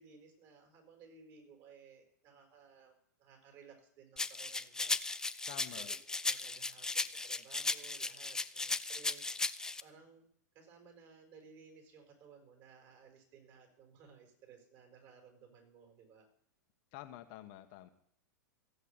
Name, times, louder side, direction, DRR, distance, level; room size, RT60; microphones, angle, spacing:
voice 1, 0.0-10.3 10.5-16.3, right 6 dB, 40° right, 4 dB, 5.6 m, -59 dB
sound 1, 4.2-9.8, left 3 dB, 5° left, 0.5 m, -36 dB
voice 2, 5.5-5.9 16.9-17.9, left 14 dB, 45° left, 7 dB, 1.3 m, -49 dB
15.5 x 8.1 x 8.8 m, 0.65 s
figure-of-eight pair, 95°, 10 cm